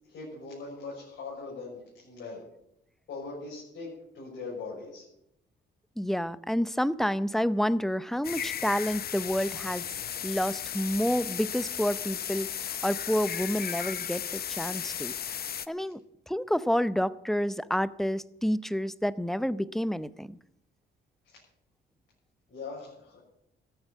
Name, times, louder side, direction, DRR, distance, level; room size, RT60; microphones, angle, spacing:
voice 1, 0.1-2.4 3.1-3.9 4.1-5.0 21.3-21.4 22.5-23.2, left 3 dB, 70° left, -5 dB, 6.6 m, -40 dB
voice 2, 6.0-9.8 10.2-15.1 15.7-16.0 16.3-20.4, equal, ahead, 16 dB, 0.6 m, -29 dB
sound 1, 8.2-15.7, left 9 dB, 50° left, 0.8 m, -35 dB
13.5 x 8.8 x 9.4 m, 0.80 s
cardioid pair, 90°, 20 cm